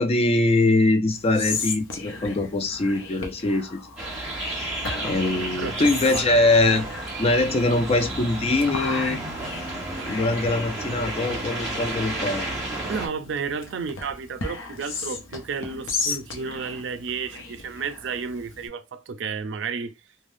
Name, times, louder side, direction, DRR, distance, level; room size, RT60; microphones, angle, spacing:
voice 1, 0.0-3.8 4.5-4.7 5.0-6.9 7.2-9.2 10.0-12.5, left 2 dB, 30° left, 0.4 m, -22 dB
Whispering, 1.1-18.7, left 4 dB, 80° left, 0.7 m, -36 dB
sound 1, 4.0-13.1, right 1 dB, 5° right, 1.2 m, -32 dB
voice 2, 5.3-6.4 9.8-10.2 12.9-19.9, right 5 dB, 65° right, 0.4 m, -32 dB
3.3 x 2.2 x 2.6 m
head